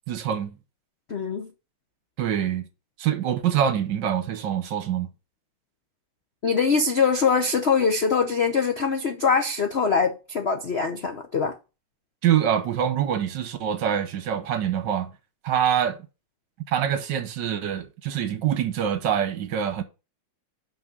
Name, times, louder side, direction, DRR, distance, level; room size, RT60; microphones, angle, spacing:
voice 1, 0.1-0.6 2.2-2.7 3.0-5.1 12.2-15.1 15.4-16.0 16.7-19.8, right 9 dB, 60° right, 1.4 m, -25 dB
voice 2, 1.1-1.5 6.4-11.5, left 5 dB, 75° left, 0.6 m, -23 dB
6.0 x 5.5 x 6.7 m
omnidirectional pair, 2.4 m